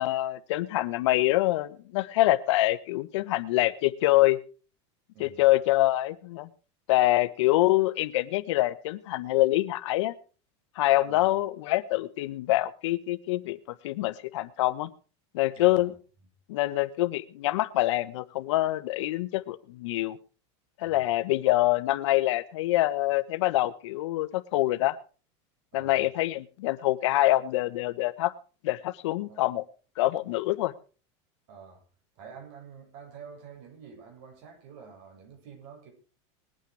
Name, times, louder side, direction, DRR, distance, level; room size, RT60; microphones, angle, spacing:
voice 1, 0.0-4.4 5.2-6.5 6.9-10.1 10.8-13.6 13.8-14.9 15.3-15.9 16.5-20.2 20.8-25.0 25.7-28.3 28.6-29.6 30.0-30.7, left 17 dB, 75° left, 1.2 m, -25 dB
voice 2, 5.1-5.4 11.1-11.3 15.5-15.9 20.8-21.1 25.7-26.0 29.3-29.5 31.5-31.8 32.2-35.9, right 6 dB, 60° right, 7.5 m, -48 dB
21.0 x 9.1 x 4.8 m
supercardioid pair, 145°, 15 cm